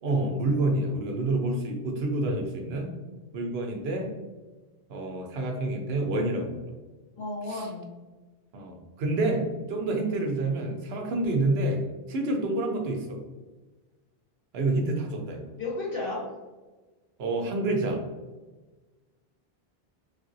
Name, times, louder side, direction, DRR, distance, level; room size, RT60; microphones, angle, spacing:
voice 1, 0.0-2.9 3.3-4.1 4.9-6.6 7.5-7.7 8.5-11.8 12.1-13.2 14.5-15.5 17.2-18.0, right 2 dB, 85° right, 3 dB, 0.9 m, -28 dB
voice 2, 7.2-7.9 10.0-10.2 11.1-11.2 15.6-16.3, left 2 dB, 60° left, -5 dB, 1.3 m, -33 dB
3.2 x 2.6 x 2.5 m, 1.2 s
omnidirectional pair, 1.0 m